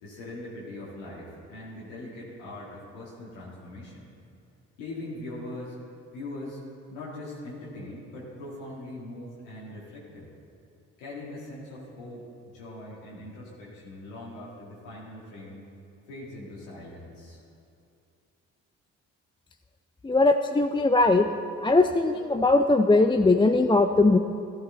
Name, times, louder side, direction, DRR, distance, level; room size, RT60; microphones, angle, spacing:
voice 1, 0.0-4.0 4.8-5.8 6.1-6.6 6.9-10.3 11.0-12.2 12.5-15.6 16.1-17.4, left 1 dB, 90° left, -6 dB, 2.2 m, -41 dB
voice 2, 20.0-21.3 21.6-24.2, left 2 dB, 15° left, 6 dB, 0.5 m, -20 dB
12.5 x 12.5 x 3.9 m, 2.6 s
hypercardioid pair, 45°, 38 cm